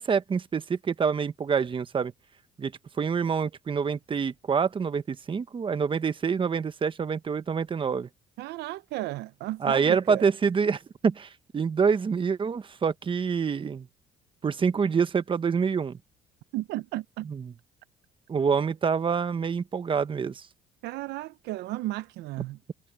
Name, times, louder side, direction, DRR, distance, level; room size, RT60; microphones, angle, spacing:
voice 1, 0.0-2.1 2.6-2.7 3.0-8.1 9.6-13.9 14.4-16.0 17.2-17.5 18.3-20.5, right 6 dB, 30° right, 1.1 m, -26 dB
voice 2, 8.4-10.3 16.5-17.3 20.8-22.6, right 17 dB, 80° right, 0.6 m, -34 dB
cardioid pair, 110°, 17 cm